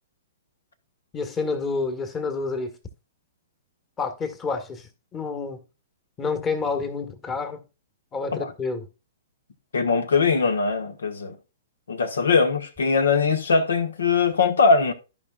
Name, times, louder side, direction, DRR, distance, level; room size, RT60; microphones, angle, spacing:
voice 1, 1.1-2.7 4.0-5.6 6.2-7.6 8.1-8.9, left 4 dB, 20° left, 1.5 m, -29 dB
voice 2, 9.7-11.3 11.9-14.9, left 4 dB, 70° left, 1.4 m, -21 dB
14.5 x 5.2 x 2.3 m
figure-of-eight pair, 115°, 0 cm